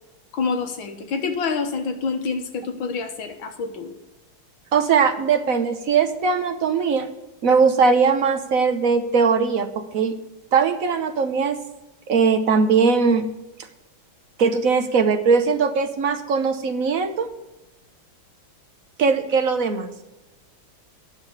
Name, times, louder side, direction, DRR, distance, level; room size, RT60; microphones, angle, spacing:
voice 1, 0.3-3.9, left 4 dB, 70° left, 5 dB, 1.9 m, -27 dB
voice 2, 4.7-7.1 7.4-10.2 10.5-11.6 12.1-13.3 14.4-17.3 19.0-19.9, right 5 dB, 55° right, 7 dB, 1.1 m, -20 dB
10.0 x 7.0 x 8.0 m, 1.0 s
omnidirectional pair, 2.2 m